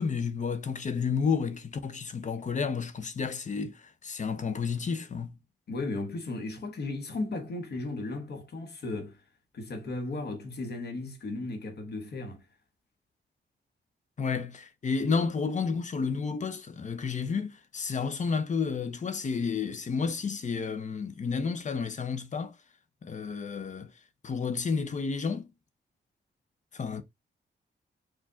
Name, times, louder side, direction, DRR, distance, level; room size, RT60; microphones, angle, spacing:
voice 1, 0.0-5.3 14.2-22.6 23.0-23.9 24.2-25.5 26.7-27.0, left 5 dB, 40° left, 0.7 m, -31 dB
voice 2, 5.7-9.2 9.5-12.4, left 2 dB, 60° left, 1.2 m, -35 dB
4.9 x 2.6 x 3.5 m
wide cardioid pair, 130°, 19 cm